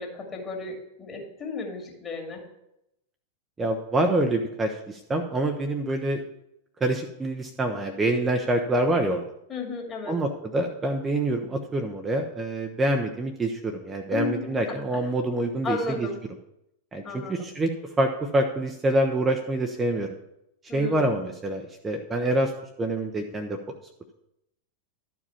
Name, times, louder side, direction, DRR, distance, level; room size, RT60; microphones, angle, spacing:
voice 1, 0.0-2.4 9.5-10.2 14.1-15.1 15.6-16.2 17.0-17.5 20.7-21.2, left 3 dB, 25° left, 0 dB, 2.4 m, -34 dB
voice 2, 3.6-6.2 6.8-9.2 10.1-16.1 16.9-17.7 18.0-20.1 20.7-22.5 22.8-23.6, right 1 dB, 15° right, 4 dB, 0.7 m, -26 dB
12.0 x 4.9 x 5.6 m, 0.83 s
figure-of-eight pair, 90°, 0 cm